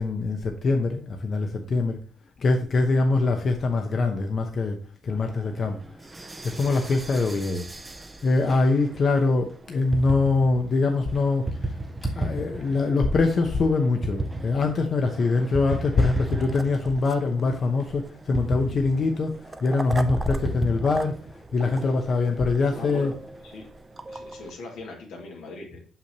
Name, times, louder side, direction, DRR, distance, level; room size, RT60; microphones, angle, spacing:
voice 1, 0.0-2.0 2.4-4.8 5.0-5.8 6.4-7.6 8.2-11.7 12.1-19.3 19.6-21.1 21.5-23.1, left 3 dB, 50° left, 4 dB, 0.8 m, -23 dB
sound 1, 5.1-24.5, right 2 dB, 20° right, 0.7 m, -35 dB
voice 2, 22.7-23.1 23.4-23.7 24.1-25.9, left 3 dB, 90° left, -1 dB, 2.3 m, -41 dB
6.5 x 5.7 x 2.9 m, 0.42 s
cardioid pair, 90°, 0 cm